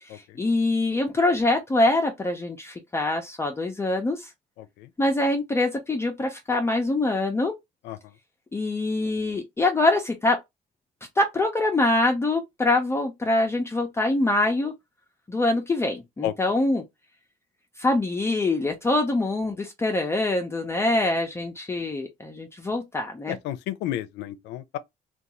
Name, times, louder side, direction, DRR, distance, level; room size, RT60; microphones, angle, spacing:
voice 1, 0.0-4.3 5.0-7.5 8.5-10.4 11.2-14.7 15.3-16.8 17.8-23.4, left 2 dB, 15° left, 0.5 m, -24 dB
voice 2, 23.3-24.8, left 12 dB, 85° left, 0.4 m, -31 dB
2.5 x 2.3 x 2.9 m
cardioid pair, 110°, 17 cm